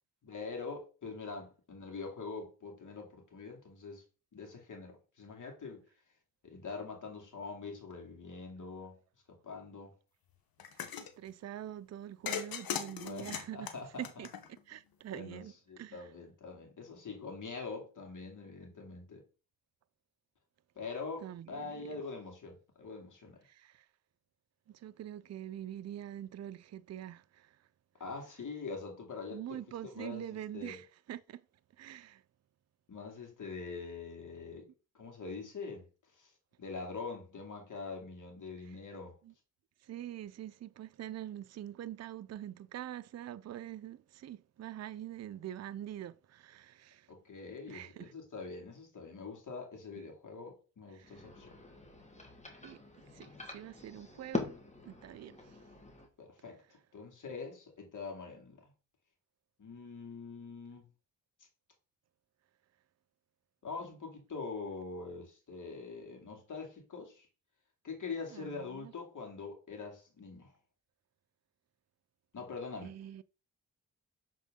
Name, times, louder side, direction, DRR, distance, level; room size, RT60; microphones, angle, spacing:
voice 1, 0.2-4.0 4.3-5.8 6.4-9.0 9.3-9.9 13.0-14.1 15.1-19.2 20.8-23.4 28.0-30.2 30.5-30.8 32.9-34.7 35.0-35.9 36.1-36.3 36.6-39.1 47.1-51.6 56.2-56.6 56.9-58.6 59.6-60.9 63.6-67.3 67.8-70.5 72.3-72.9, left 4 dB, 60° left, 2.4 m, -44 dB
sound 1, 10.6-11.1 12.3-14.8, left 9 dB, 80° left, 0.9 m, -39 dB
voice 2, 10.7-13.7 14.0-14.3 14.7-16.1 21.2-22.0 23.4-23.9 24.7-27.6 29.3-31.4 31.8-32.2 38.7-38.8 39.2-39.3 39.8-47.1 47.7-48.1 50.9-51.2 52.6-52.8 53.1-54.5 54.8-55.6 68.3-68.9 72.8-73.2, right 11 dB, 50° right, 0.4 m, -45 dB
sound 2, 51.0-56.1, left 3 dB, 20° left, 1.5 m, -43 dB
7.2 x 3.7 x 3.6 m
cardioid pair, 60°, 35 cm